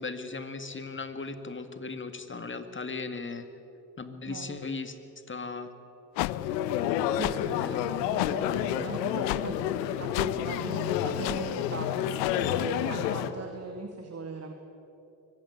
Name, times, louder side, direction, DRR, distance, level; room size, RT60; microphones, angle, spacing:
voice 1, 0.0-3.5 4.0-5.0 5.3-5.7 7.5-7.8 8.4-8.9, left 4 dB, 25° left, 9 dB, 2.0 m, -37 dB
voice 2, 4.3-4.6 7.1-7.6 8.0-9.6 10.0-11.9 12.4-14.5, right 4 dB, 30° right, 5 dB, 2.2 m, -39 dB
sound 1, 6.1-6.3 7.2-7.3 8.2-8.3 9.2-9.4 10.1-10.3 11.2-11.4 12.2-12.3, left 21 dB, 50° left, 0.6 m, -30 dB
sound 2, 6.3-13.3, left 10 dB, 75° left, 1.3 m, -29 dB
24.0 x 18.5 x 8.3 m, 2.8 s
hypercardioid pair, 55°, 50 cm